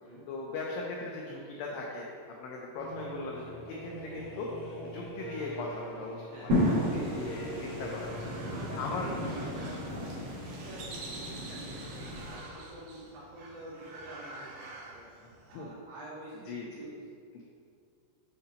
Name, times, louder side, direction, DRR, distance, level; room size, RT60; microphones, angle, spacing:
voice 1, 0.3-2.1 2.4-8.2 8.8-9.1 10.0-10.3 15.5-15.7 16.5-16.9 17.3-17.4, left 3 dB, 85° left, -2 dB, 2.3 m, -39 dB
sound 1, 2.7-8.7, right 1 dB, 70° left, 1.9 m, -44 dB
voice 2, 6.3-6.7 8.4-11.8 12.2-15.1 15.5-17.0, right 1 dB, 70° right, -8 dB, 3.4 m, -47 dB
sound 2, 6.4-15.6, right 2 dB, 85° right, 2.0 m, -48 dB
sound 3, 6.5-12.4, left 1 dB, 55° right, 1.8 m, -33 dB
7.9 x 5.7 x 2.8 m, 2.4 s
omnidirectional pair, 5.3 m